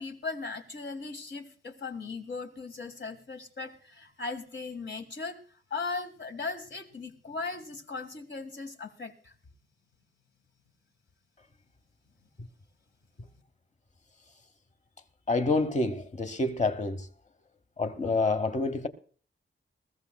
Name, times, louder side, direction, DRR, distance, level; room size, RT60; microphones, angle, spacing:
voice 1, 0.0-5.4 5.7-9.3, left 4 dB, 60° left, 1.7 m, -38 dB
voice 2, 15.3-17.1 17.8-18.9, left 3 dB, 35° left, 0.9 m, -27 dB
21.0 x 15.0 x 2.2 m
wide cardioid pair, 145°, 21 cm